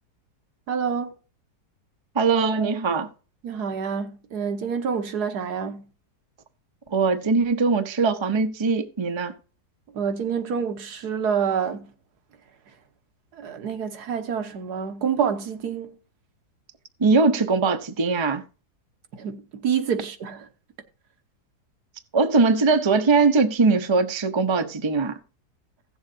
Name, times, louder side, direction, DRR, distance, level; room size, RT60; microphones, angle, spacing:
voice 1, 0.7-1.1 3.4-5.8 9.9-11.9 13.3-16.0 19.1-20.5, right 7 dB, 75° right, 1.6 m, -27 dB
voice 2, 2.1-3.1 6.9-9.3 17.0-18.4 22.1-25.2, right 4 dB, 25° right, 0.6 m, -21 dB
16.5 x 7.2 x 2.7 m
omnidirectional pair, 1.8 m